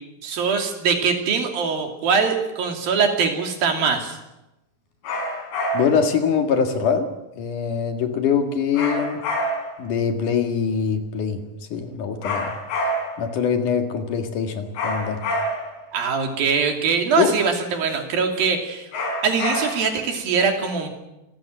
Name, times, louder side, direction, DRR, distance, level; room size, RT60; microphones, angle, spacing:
voice 1, 0.2-4.2 15.9-18.9 19.2-20.9, right 5 dB, 70° right, 4 dB, 4.5 m, -22 dB
sound 1, 5.0-6.1 8.7-9.8 12.2-13.3 14.8-15.8 18.9-20.0, left 1 dB, 80° left, 5.9 m, -27 dB
voice 2, 5.7-9.2 9.8-11.4 11.7-12.5 13.2-15.2 17.2-17.3, left 6 dB, 60° left, 6 dB, 3.2 m, -23 dB
26.5 x 15.0 x 9.2 m, 0.95 s
omnidirectional pair, 4.3 m